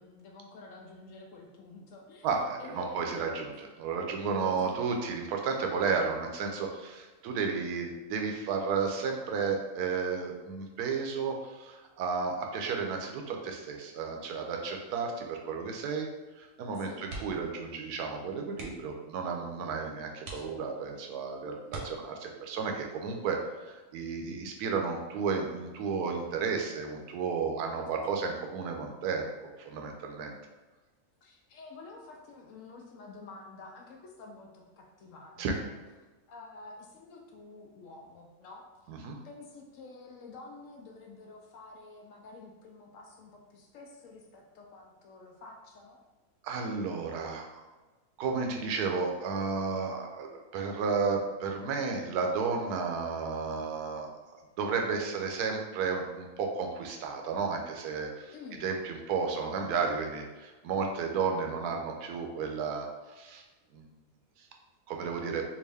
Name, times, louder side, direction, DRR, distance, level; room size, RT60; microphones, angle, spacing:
voice 1, 0.0-2.3 2.6-3.5 4.6-5.0 16.8-17.2 27.7-28.4 31.2-35.8 36.3-38.9 39.2-46.0 58.3-58.7, left 3 dB, 70° left, 1 dB, 0.8 m, -50 dB
voice 2, 2.2-16.1 16.4-30.3 35.4-35.5 38.9-39.2 46.4-47.6 48.2-54.1 54.6-58.3 58.6-62.9 63.2-63.4 63.7-63.8 64.4-64.5 64.9-65.4, right 5 dB, 85° right, 2 dB, 1.1 m, -33 dB
sound 1, 17.0-17.6 17.9-18.0 18.5-19.0 19.6-19.7 20.2-21.0 21.6-22.4 24.0-24.3 24.7-24.8, right 2 dB, 55° right, 0.9 m, -44 dB
3.5 x 2.5 x 3.3 m, 1.2 s
omnidirectional pair, 1.6 m